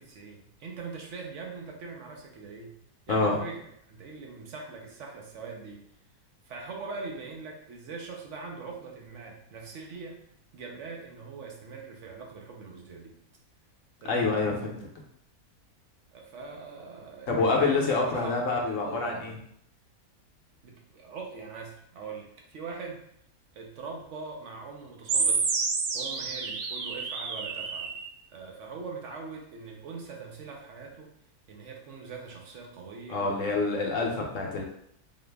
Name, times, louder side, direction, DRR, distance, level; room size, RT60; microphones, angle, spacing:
voice 1, 0.0-2.8 3.1-3.6 3.9-5.8 6.4-10.2 10.5-13.1 14.0-14.3 16.1-19.4 20.6-23.0 23.5-25.5 25.9-28.0 28.3-31.1 31.5-33.9, right 4 dB, 60° right, 1 dB, 1.0 m, -42 dB
voice 2, 14.1-14.8 17.3-19.3 33.1-34.6, left 3 dB, 65° left, 0 dB, 1.0 m, -26 dB
sound 1, 25.1-28.1, right 5 dB, 90° right, 1.1 m, -29 dB
3.9 x 2.5 x 3.3 m, 0.70 s
omnidirectional pair, 1.6 m